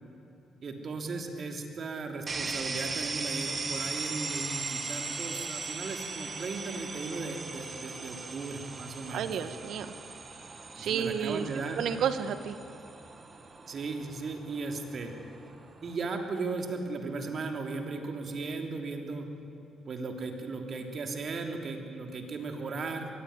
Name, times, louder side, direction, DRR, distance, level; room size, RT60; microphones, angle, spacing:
voice 1, 0.6-9.4 10.8-11.8 13.7-15.1 15.8-19.3 19.9-23.1, right 3 dB, 50° right, 3 dB, 3.1 m, -36 dB
sound 1, 2.3-16.0, right 4 dB, 35° right, 2.0 m, -39 dB
voice 2, 9.1-9.9 10.8-11.5 11.8-12.6, right 8 dB, 75° right, 11 dB, 1.3 m, -31 dB
22.0 x 16.0 x 9.7 m, 2.8 s
cardioid pair, 90°, 0 cm